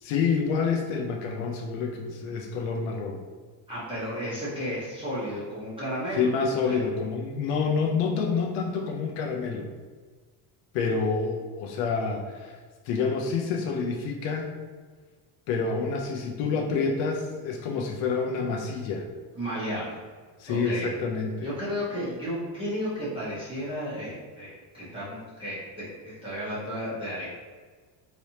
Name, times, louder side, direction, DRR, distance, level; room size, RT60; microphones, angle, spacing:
voice 1, 0.0-3.2 6.1-9.7 10.7-12.6 12.8-14.5 15.5-19.1 20.4-21.5, left 5 dB, 80° left, 0 dB, 0.6 m, -28 dB
voice 2, 3.7-6.3 6.7-6.8 19.3-20.0 20.5-20.9 21.4-27.3, equal, 10° right, -11 dB, 0.8 m, -33 dB
3.2 x 3.0 x 2.8 m, 1.5 s
cardioid pair, 150°, 45 cm